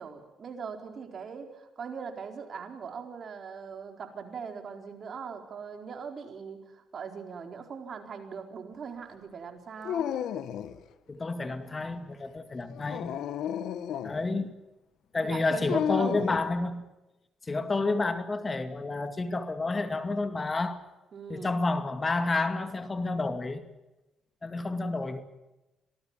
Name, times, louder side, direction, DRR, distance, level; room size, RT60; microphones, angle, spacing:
voice 1, 0.0-10.1 15.2-16.2 21.1-21.6, right 6 dB, 50° right, 5 dB, 4.4 m, -40 dB
Dog, 9.8-10.8 12.7-14.2 15.7-16.4, left 9 dB, 80° left, 1.5 m, -32 dB
voice 2, 11.1-13.1 14.0-14.5 15.1-16.8 17.4-20.8 21.3-23.6 24.4-25.2, left 3 dB, 30° left, 9 dB, 2.3 m, -30 dB
26.5 x 19.0 x 7.5 m, 1.0 s
cardioid pair, 90°, 0 cm